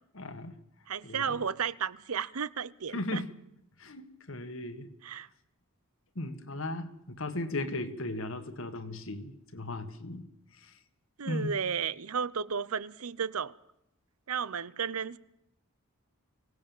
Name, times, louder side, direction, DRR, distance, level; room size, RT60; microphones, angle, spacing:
voice 1, 0.2-0.6 1.0-1.4 2.9-3.3 3.8-4.9 6.2-10.3 11.2-11.5, left 2 dB, 65° left, 1.8 m, -36 dB
voice 2, 0.9-3.2 5.0-5.3 11.2-13.5 14.3-15.2, right 6 dB, 85° right, 0.8 m, -33 dB
24.0 x 17.5 x 7.3 m
head